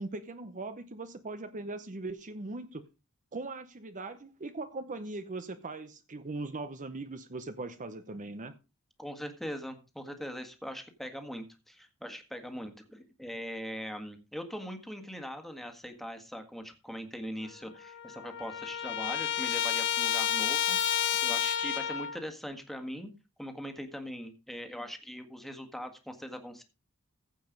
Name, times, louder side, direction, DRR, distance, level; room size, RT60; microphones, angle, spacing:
voice 1, 0.0-2.8 3.3-8.5, right 2 dB, 35° right, 0.8 m, -40 dB
voice 2, 9.0-23.1 23.4-26.6, equal, ahead, 1.7 m, -41 dB
Trumpet, 17.4-17.5 17.8-22.2, left 9 dB, 55° left, 1.6 m, -30 dB
15.5 x 5.3 x 5.2 m
head